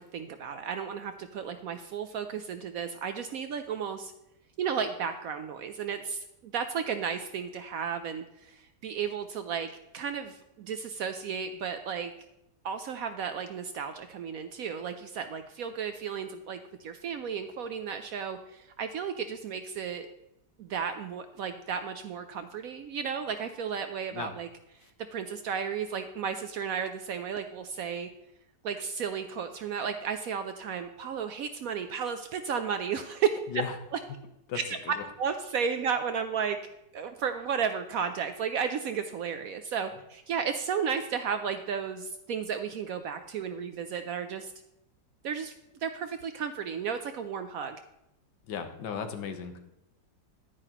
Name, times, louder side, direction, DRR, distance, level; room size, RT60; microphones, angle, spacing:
voice 1, 0.0-4.1 4.6-12.1 12.6-20.1 20.6-24.5 25.1-28.1 28.6-33.4 34.7-36.6 36.9-44.5 45.2-45.5 45.8-47.8, right 7 dB, 70° right, 8 dB, 0.8 m, -33 dB
voice 2, 48.5-49.6, left 7 dB, 80° left, 7 dB, 1.6 m, -35 dB
10.0 x 9.7 x 2.9 m, 0.87 s
omnidirectional pair, 1.9 m